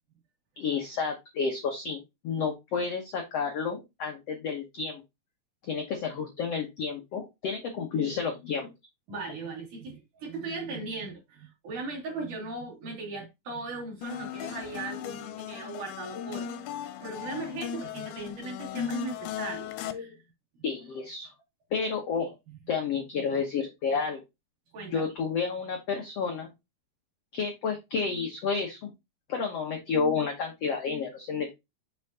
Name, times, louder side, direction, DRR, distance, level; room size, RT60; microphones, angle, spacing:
voice 1, 0.6-5.0 5.7-8.7 15.7-15.8 19.9-20.1 20.6-21.3 21.7-22.4 22.7-24.2 24.9-26.5 27.3-28.9 29.3-31.5, left 5 dB, 70° left, 1.5 m, -31 dB
voice 2, 9.1-16.7 17.0-20.2 22.2-22.3 24.7-25.1, right 3 dB, 55° right, 4.1 m, -38 dB
sound 1, 14.0-19.9, left 8 dB, 90° left, 2.6 m, -37 dB
7.3 x 5.6 x 2.8 m
omnidirectional pair, 4.5 m